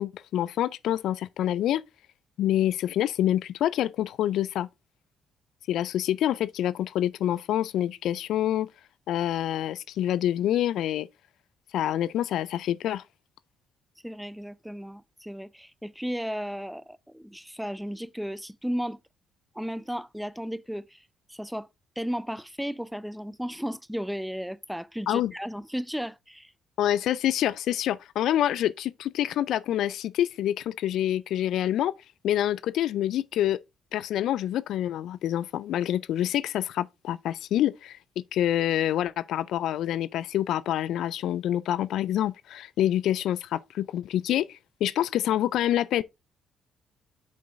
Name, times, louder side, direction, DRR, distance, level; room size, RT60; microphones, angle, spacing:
voice 1, 0.0-1.8 2.4-4.7 5.7-8.7 9.1-11.1 11.7-13.0 25.1-25.3 26.8-31.9 32.2-33.6 33.9-38.0 38.3-46.0, left 12 dB, 70° left, 0.4 m, -27 dB
voice 2, 14.0-19.0 19.5-21.0 21.3-21.7 22.0-26.5, equal, ahead, 0.5 m, -34 dB
6.4 x 5.5 x 3.6 m
hypercardioid pair, 50°, 0 cm